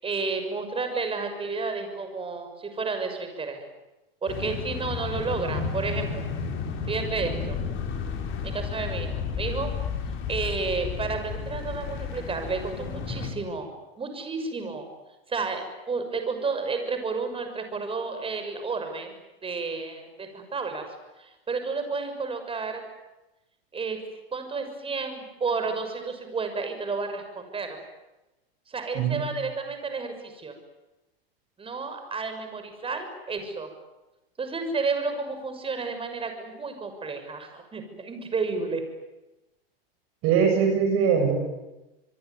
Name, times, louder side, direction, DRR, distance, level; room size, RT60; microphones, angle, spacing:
voice 1, 0.0-3.6 4.2-6.2 6.9-7.6 8.4-9.7 10.3-13.7 14.0-14.9 15.3-19.1 19.4-20.9 21.2-22.8 23.7-24.0 24.3-27.8 28.7-30.5 31.6-33.7 34.4-38.8, right 4 dB, 20° right, 7 dB, 6.6 m, -31 dB
sound 1, 4.3-13.3, left 6 dB, 40° left, 6.1 m, -32 dB
voice 2, 40.2-41.3, right 6 dB, 45° right, 4 dB, 7.6 m, -21 dB
26.5 x 22.5 x 9.7 m, 1.0 s
hypercardioid pair, 115°, 30 cm